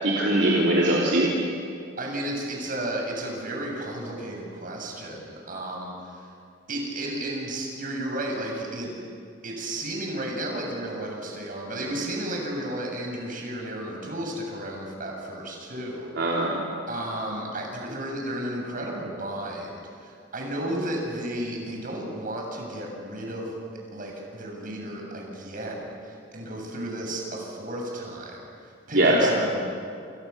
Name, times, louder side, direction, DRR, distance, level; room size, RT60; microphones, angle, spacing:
voice 1, 0.0-1.3 16.2-16.6 28.9-29.3, right 1 dB, 65° right, -4 dB, 3.7 m, -21 dB
voice 2, 2.0-6.2 6.7-8.9 9.4-16.4 16.9-23.6 23.9-29.6, right 1 dB, 50° right, 0 dB, 7.4 m, -33 dB
29.5 x 28.0 x 7.1 m, 2.3 s
head